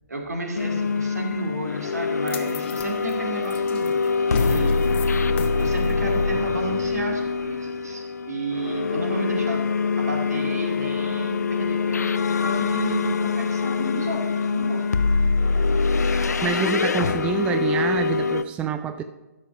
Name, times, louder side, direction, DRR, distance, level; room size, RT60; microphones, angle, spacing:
voice 1, 0.1-4.8 5.6-9.6 10.0-14.9, right 2 dB, 75° right, 2 dB, 2.4 m, -32 dB
sound 1, 0.5-18.4, left 4 dB, 75° left, 0.5 m, -24 dB
sound 2, 2.3-8.5, left 7 dB, 40° left, 1.0 m, -40 dB
voice 2, 16.0-19.0, right 7 dB, 10° right, 9 dB, 0.4 m, -27 dB
12.0 x 5.3 x 5.2 m, 1.0 s
figure-of-eight pair, 130°, 9 cm